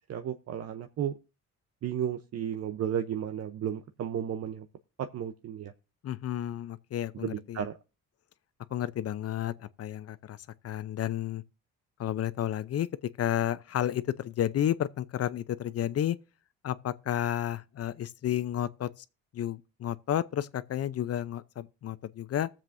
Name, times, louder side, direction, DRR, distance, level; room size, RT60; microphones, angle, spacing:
voice 1, 0.1-1.1 1.8-4.7 5.0-5.7 7.2-7.8, right 9 dB, 55° right, 0.7 m, -33 dB
voice 2, 6.0-7.7 8.7-10.4 10.6-11.4 12.0-16.2 16.6-19.0 19.3-22.5, left 11 dB, 50° left, 0.6 m, -31 dB
20.5 x 7.4 x 2.6 m
cardioid pair, 90°, 30 cm